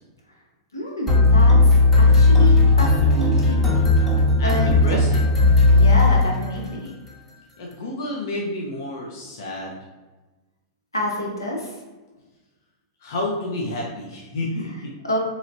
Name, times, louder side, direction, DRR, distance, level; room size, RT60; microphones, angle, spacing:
voice 1, 0.7-3.8 4.4-4.8 5.6-6.9 10.9-11.8 14.6-14.8 15.0-15.2, left 1 dB, 85° left, -2 dB, 1.0 m, -28 dB
sound 1, 1.1-6.7, left 2 dB, 10° left, 0.9 m, -16 dB
voice 2, 4.4-5.4 7.6-9.8 13.0-14.9, left 1 dB, 55° left, -1 dB, 0.6 m, -30 dB
4.0 x 3.1 x 2.6 m, 1.2 s
figure-of-eight pair, 95°, 2 cm